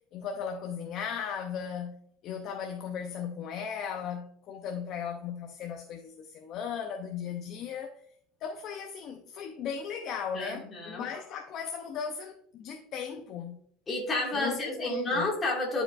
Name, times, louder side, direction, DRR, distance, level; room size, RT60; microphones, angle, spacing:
voice 1, 0.1-2.0 2.2-7.9 8.4-13.6 14.3-15.3, left 7 dB, 35° left, 0.6 m, -37 dB
voice 2, 10.3-11.1 13.9-15.8, left 2 dB, 20° left, 2.0 m, -30 dB
10.5 x 4.9 x 2.4 m
cardioid pair, 170°, 0 cm